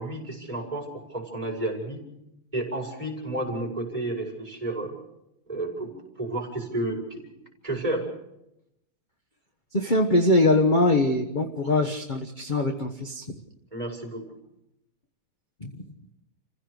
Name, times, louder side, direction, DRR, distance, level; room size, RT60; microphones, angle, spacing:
voice 1, 0.0-2.0 2.5-4.9 5.5-5.9 6.2-7.3 7.6-8.1 13.7-14.3, right 1 dB, 15° right, 0 dB, 5.3 m, -31 dB
voice 2, 9.7-13.4 15.6-15.7, left 2 dB, 25° left, 4 dB, 1.1 m, -22 dB
28.5 x 16.0 x 6.5 m, 0.85 s
omnidirectional pair, 2.4 m